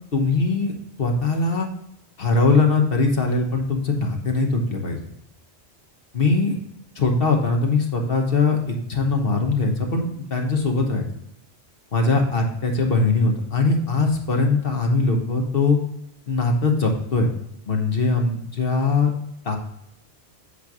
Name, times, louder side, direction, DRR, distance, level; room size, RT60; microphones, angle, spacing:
voice 1, 0.1-0.7 1.0-1.7 2.2-5.0 6.1-6.6 6.9-11.0 11.9-15.8 16.3-17.3 17.7-19.1 19.4-19.6, left 3 dB, 60° left, 2 dB, 1.2 m, -21 dB
8.3 x 3.3 x 6.0 m, 0.78 s
omnidirectional pair, 1.1 m